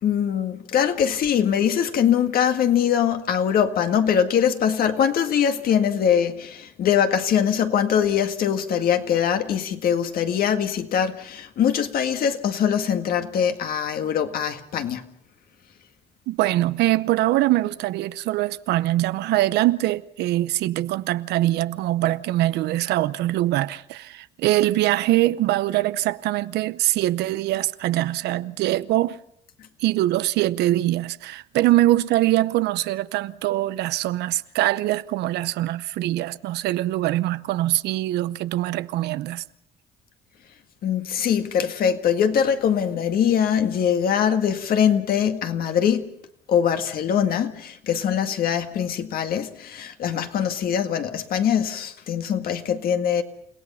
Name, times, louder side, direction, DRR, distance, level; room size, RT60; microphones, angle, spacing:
voice 1, 0.0-15.1 40.8-46.1 46.5-53.2, left 8 dB, 60° left, 2.0 m, -22 dB
voice 2, 16.3-29.2 29.8-39.4, right 15 dB, 80° right, 0.7 m, -23 dB
29.5 x 17.0 x 5.6 m
cardioid pair, 110°, 17 cm